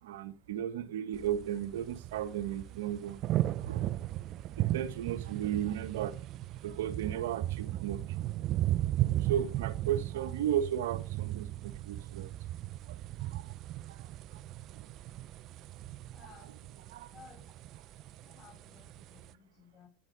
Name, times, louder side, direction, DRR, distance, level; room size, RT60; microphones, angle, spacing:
voice 1, 0.0-3.2 3.5-3.9 4.5-6.2 6.6-8.0 9.2-12.3 12.8-13.5 13.9-14.4 16.2-16.5 16.9-17.2, right 10 dB, 70° right, 1.6 m, -35 dB
Thunder Storm, 1.1-19.3, right 14 dB, 50° right, 0.7 m, -36 dB
voice 2, 16.1-16.5 17.1-17.4 17.9-19.9, left 5 dB, 35° left, 6.9 m, -57 dB
12.5 x 10.0 x 5.2 m
hypercardioid pair, 80°, 0 cm